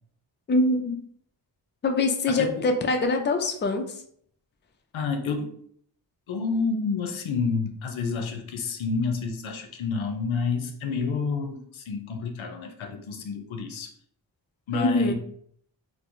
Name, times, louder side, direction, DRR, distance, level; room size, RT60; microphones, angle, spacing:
voice 1, 0.5-1.1 1.8-4.0 14.7-15.1, left 2 dB, 25° left, 5 dB, 0.4 m, -24 dB
voice 2, 2.3-2.7 4.9-5.6 6.3-13.9 14.7-15.1, left 4 dB, 90° left, 4 dB, 0.6 m, -29 dB
4.5 x 2.0 x 2.5 m, 0.64 s
wide cardioid pair, 90°, 46 cm